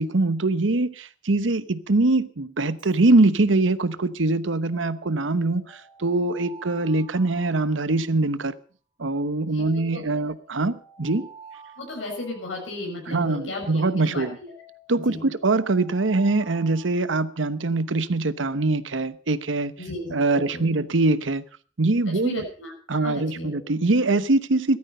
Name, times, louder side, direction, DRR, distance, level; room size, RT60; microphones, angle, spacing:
voice 1, 0.0-5.6 6.0-8.5 9.0-11.3 13.1-14.4 14.9-19.7 20.1-21.4 21.8-22.4 22.9-24.8, right 2 dB, 85° right, 1.0 m, -23 dB
Alarm, 2.6-3.0 4.7-8.5 9.6-13.3 14.5-17.7, right 3 dB, 25° right, 6.1 m, -50 dB
voice 2, 9.4-10.0 11.0-11.2 11.8-14.2 15.1-15.3 19.8-20.7 22.1-23.5, left 1 dB, 90° left, 6.8 m, -35 dB
16.0 x 13.0 x 5.5 m
head